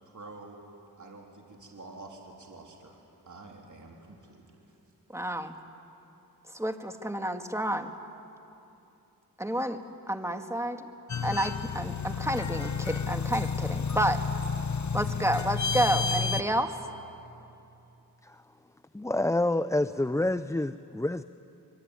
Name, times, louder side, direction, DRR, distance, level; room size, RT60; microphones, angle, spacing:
voice 1, 0.1-0.6 0.9-4.8, right 2 dB, 50° right, 0 dB, 3.6 m, -48 dB
voice 2, 5.1-5.6 6.5-7.9 9.4-9.8 10.1-10.8 11.2-14.2 14.9-16.7, right 1 dB, 5° right, 6 dB, 1.9 m, -30 dB
sound 1, 11.1-16.4, left 5 dB, 50° left, 1.0 m, -31 dB
voice 3, 18.9-21.2, left 1 dB, 10° left, 13 dB, 0.5 m, -28 dB
25.0 x 23.5 x 9.7 m, 2.8 s
cardioid pair, 50°, 38 cm